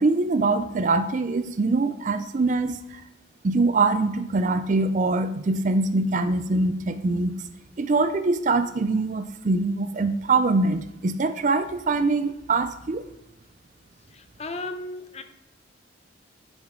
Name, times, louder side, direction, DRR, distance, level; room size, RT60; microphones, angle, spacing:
voice 1, 0.0-2.8 3.4-7.4 7.8-13.1, right 3 dB, 40° right, 11 dB, 0.4 m, -23 dB
voice 2, 14.1-15.2, left 2 dB, 35° left, 8 dB, 0.6 m, -35 dB
10.5 x 5.3 x 3.7 m, 0.88 s
head